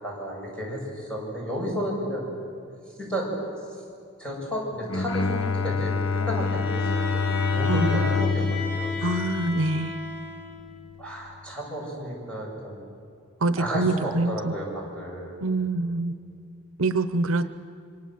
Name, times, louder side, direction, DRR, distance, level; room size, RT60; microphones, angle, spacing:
voice 1, 0.0-2.3 3.0-3.3 4.2-7.2 7.5-8.9 11.0-12.8 13.6-15.4, equal, 5° left, -3 dB, 7.6 m, -32 dB
Bowed string instrument, 4.8-10.1, left 4 dB, 75° left, 0.9 m, -27 dB
Bowed string instrument 2, 6.4-10.7, left 2 dB, 50° left, 5.6 m, -34 dB
voice 2, 9.0-9.9 13.4-14.5 15.4-16.1 16.8-17.5, right 2 dB, 80° right, 12 dB, 0.9 m, -25 dB
26.5 x 25.5 x 7.7 m, 2.4 s
head